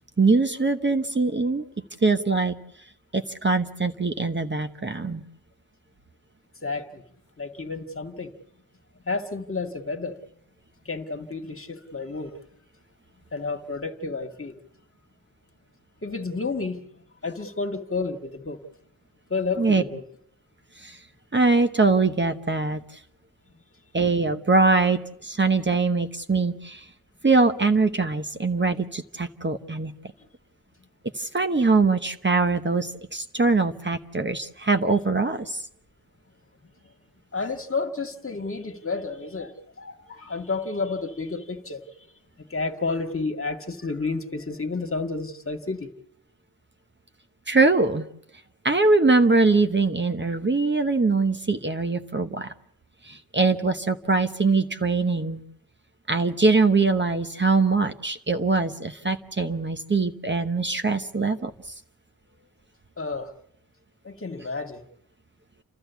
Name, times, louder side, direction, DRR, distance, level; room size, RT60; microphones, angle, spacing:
voice 1, 0.2-1.6 2.0-2.5 3.1-5.2 19.6-19.8 20.8-21.0 21.3-22.8 23.9-26.8 27.2-29.9 31.1-35.6 47.5-48.1 48.6-52.5 53.1-55.4 56.1-61.5, right 3 dB, 30° right, 1.1 m, -22 dB
voice 2, 6.6-7.0 7.4-8.3 9.1-10.2 10.9-12.4 13.3-14.6 16.0-16.8 17.2-18.6 19.3-20.0 37.3-41.8 42.5-45.9 63.0-63.3 64.0-64.8, left 3 dB, 35° left, 1.9 m, -31 dB
30.0 x 13.5 x 8.2 m
wide cardioid pair, 95°, 36 cm